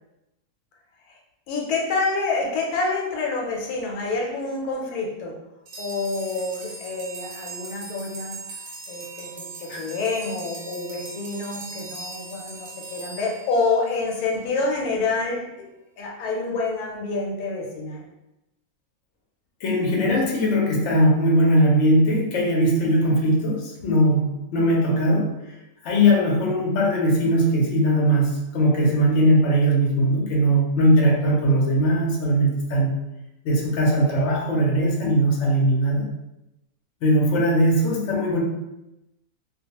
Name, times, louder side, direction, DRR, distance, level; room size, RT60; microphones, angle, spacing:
voice 1, 1.5-5.4 5.8-8.4 8.9-15.7 16.0-18.0, left 3 dB, 85° left, -1 dB, 1.1 m, -27 dB
sound 1, 5.7-14.2, right 3 dB, 65° right, 0.8 m, -40 dB
voice 2, 19.6-25.4 25.8-32.9 33.4-36.1 37.0-38.4, equal, 60° left, -2 dB, 0.8 m, -20 dB
2.4 x 2.2 x 2.8 m, 0.92 s
omnidirectional pair, 1.6 m